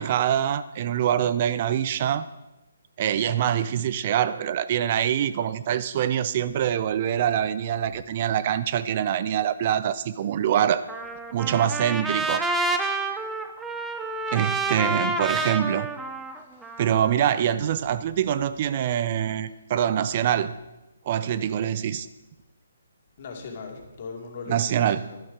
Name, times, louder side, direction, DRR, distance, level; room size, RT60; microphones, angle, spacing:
voice 1, 0.0-2.3 3.0-10.8 11.3-12.4 14.3-15.9 16.8-20.6 21.1-22.1 24.5-25.0, right 10 dB, 40° right, 14 dB, 0.5 m, -24 dB
Trumpet, 10.9-17.1, right 2 dB, 5° right, 0.7 m, -29 dB
voice 2, 14.4-14.8 16.5-16.8 23.2-25.2, left 4 dB, 45° left, 2 dB, 2.4 m, -40 dB
11.5 x 11.0 x 5.1 m, 1.0 s
figure-of-eight pair, 140°, 0 cm